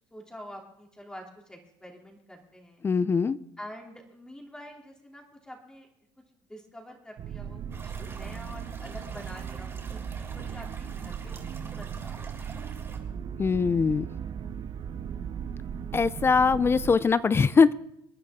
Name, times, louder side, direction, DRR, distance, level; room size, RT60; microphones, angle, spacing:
voice 1, 0.1-2.8 3.6-5.9 6.5-12.3, equal, 10° left, 1 dB, 3.1 m, -46 dB
voice 2, 2.8-3.4 13.4-14.1 15.9-17.7, left 5 dB, 25° left, 18 dB, 0.4 m, -22 dB
sound 1, 7.2-17.0, right 8 dB, 50° right, 0.9 m, -37 dB
sound 2, 7.7-13.0, right 4 dB, 25° right, 3.8 m, -47 dB
26.5 x 10.0 x 3.7 m, 0.79 s
supercardioid pair, 100°, 10 cm